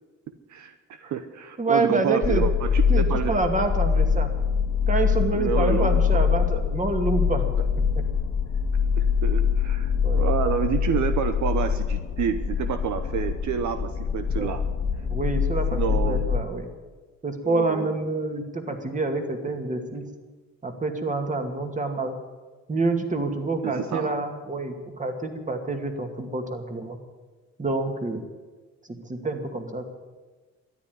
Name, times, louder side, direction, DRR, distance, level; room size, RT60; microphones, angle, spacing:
voice 1, 0.5-3.3 5.3-6.2 9.2-14.7 15.7-16.3 17.4-17.9 23.6-24.1, right 8 dB, 70° right, 9 dB, 1.0 m, -28 dB
voice 2, 1.6-2.4 2.9-4.3 4.9-7.4 8.0-8.1 10.0-10.3 14.3-14.5 15.1-16.7 17.2-20.0 20.6-22.2 22.7-27.0 27.6-28.2 29.1-29.9, right 2 dB, 25° right, 5 dB, 2.4 m, -27 dB
sound 1, 2.2-16.4, left 6 dB, 50° left, 2.0 m, -24 dB
13.0 x 10.0 x 9.6 m, 1.3 s
cardioid pair, 90°, 30 cm